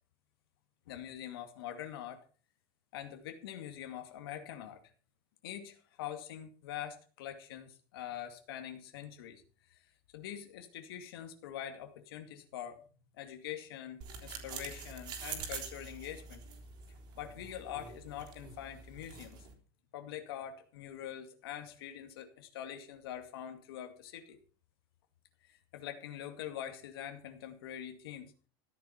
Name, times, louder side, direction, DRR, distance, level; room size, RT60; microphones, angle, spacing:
voice 1, 0.9-2.2 2.9-4.8 5.4-9.4 9.7-9.8 10.1-12.8 13.1-16.4 17.2-19.5 19.9-24.4 25.4-28.3, left 10 dB, 85° left, 6 dB, 2.3 m, -44 dB
sound 1, 14.0-19.5, right 6 dB, 35° right, 3.8 m, -46 dB
14.5 x 10.0 x 5.9 m, 0.39 s
supercardioid pair, 170°, 12 cm